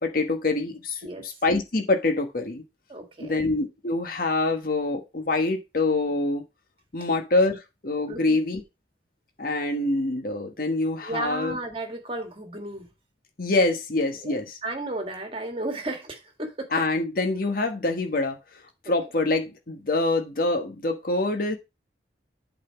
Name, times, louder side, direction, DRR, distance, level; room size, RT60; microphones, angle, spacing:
voice 1, 0.0-2.6 3.2-6.4 6.9-8.6 9.4-11.6 13.4-14.6 16.7-18.4 18.8-21.6, left 2 dB, 50° left, 1.2 m, -25 dB
voice 2, 1.0-1.4 2.9-3.4 8.1-8.4 11.0-12.9 14.1-16.7 18.9-19.0, right 2 dB, 30° right, 1.8 m, -34 dB
8.3 x 4.1 x 5.8 m
head